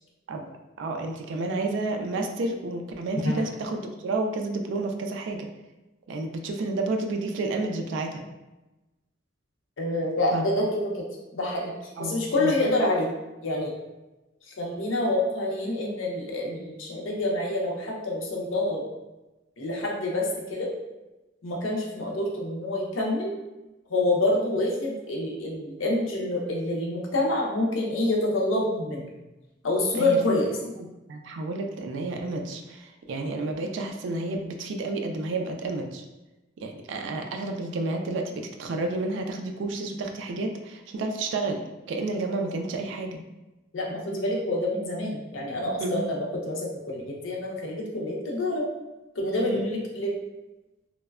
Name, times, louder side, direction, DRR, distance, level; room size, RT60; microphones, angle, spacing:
voice 1, 0.8-5.5 6.1-8.2 10.3-10.4 12.0-12.5 30.0-30.2 30.8-36.0 36.6-41.6 41.9-43.2 45.8-46.1 49.4-49.7, right 2 dB, 65° right, 4 dB, 0.3 m, -30 dB
voice 2, 9.8-11.0 11.3-11.7 12.0-13.1 13.4-13.7 14.5-18.8 19.6-20.7 21.4-23.3 23.9-29.0 29.6-30.5 43.7-48.7 49.2-50.1, left 1 dB, 80° left, -1 dB, 0.6 m, -27 dB
3.1 x 2.1 x 2.3 m, 1.0 s
head